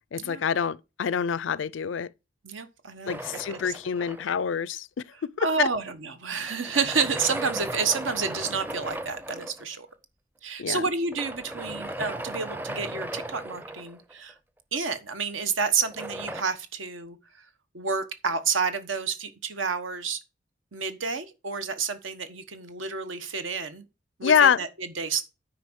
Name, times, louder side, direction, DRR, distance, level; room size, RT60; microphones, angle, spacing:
voice 1, 0.1-2.1 3.1-4.9 5.2-5.7 10.6-10.8 24.2-24.6, left 7 dB, 70° left, 0.4 m, -25 dB
voice 2, 2.4-3.2 3.5-3.7 5.4-9.9 10.4-14.3 14.7-17.2 17.7-20.2 20.7-23.9 24.2-25.2, right 5 dB, 80° right, 1.3 m, -30 dB
sound 1, 3.1-4.6 6.5-9.6 11.1-14.3 15.8-16.4, right 1 dB, 10° right, 0.6 m, -36 dB
9.4 x 4.9 x 6.3 m
head